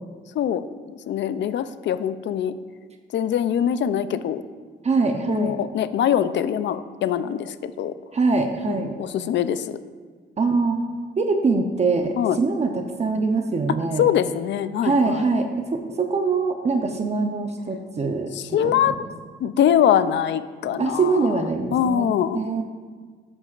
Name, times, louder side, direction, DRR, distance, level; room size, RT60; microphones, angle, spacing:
voice 1, 1.1-2.5 3.1-4.4 5.3-7.9 8.7-9.7 12.1-12.4 14.0-15.3 18.3-19.0 19.4-21.4 21.7-22.4, left 9 dB, 65° left, 13 dB, 0.5 m, -23 dB
voice 2, 4.8-5.6 8.1-8.9 10.4-10.8 11.2-14.0 14.8-18.9 20.8-22.6, right 4 dB, 35° right, 4 dB, 0.8 m, -23 dB
12.5 x 8.6 x 2.5 m, 1.5 s
cardioid pair, 90°, 20 cm